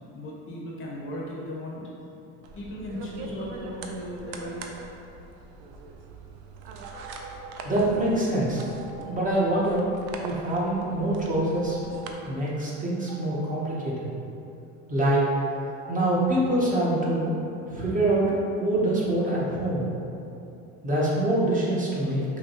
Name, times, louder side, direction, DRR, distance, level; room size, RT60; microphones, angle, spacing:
voice 1, 0.1-1.8 2.5-4.7, left 1 dB, 40° left, -3 dB, 0.8 m, -36 dB
sound 1, 2.4-12.1, right 4 dB, 85° right, 0.5 m, -42 dB
sound 2, 6.8-7.6 8.6-9.3 11.3-12.1 13.1-13.8 15.8-16.6, right 4 dB, 55° right, 0.8 m, -43 dB
voice 2, 7.6-8.6 9.1-9.9 10.2-11.8 12.2-14.1 14.9-15.3 15.9-17.4 17.7-19.9 20.8-22.2, right 1 dB, 25° right, -5 dB, 0.9 m, -25 dB
5.7 x 2.2 x 2.9 m, 2.7 s
supercardioid pair, 110°, 32 cm